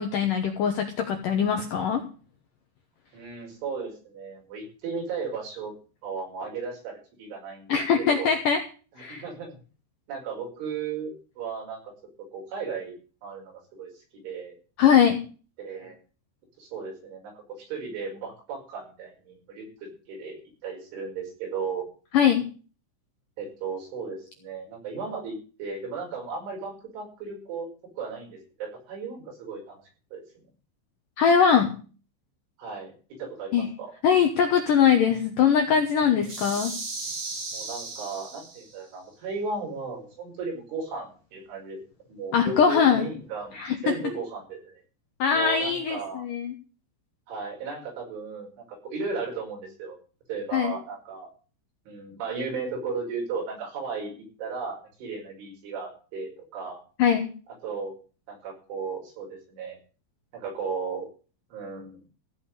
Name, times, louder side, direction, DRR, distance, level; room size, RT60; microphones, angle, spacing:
voice 1, 0.0-2.0 7.7-8.6 9.0-9.2 14.8-15.2 22.1-22.4 31.2-31.8 33.5-33.7 34.0-36.7 42.3-43.1 43.5-43.8 45.2-46.5 50.5-50.7 57.0-57.3, left 7 dB, 75° left, 5 dB, 2.0 m, -21 dB
voice 2, 3.1-5.7 6.0-8.3 9.0-9.6 10.1-11.9 12.3-12.9 13.2-14.6 15.6-16.0 16.6-17.3 17.6-20.4 20.6-21.9 23.4-27.7 28.0-29.8 30.1-30.2 32.6-32.9 33.2-33.9 36.2-36.3 37.5-41.8 42.1-43.6 43.8-44.8 45.3-46.3 47.3-50.0 50.3-51.3 51.9-56.8 57.5-57.9 58.3-59.8 60.3-61.1 61.5-62.0, right 5 dB, 75° right, -1 dB, 7.7 m, -35 dB
sound 1, 36.2-38.8, right 3 dB, 35° right, 1.6 m, -36 dB
15.5 x 5.3 x 9.8 m, 0.38 s
omnidirectional pair, 5.5 m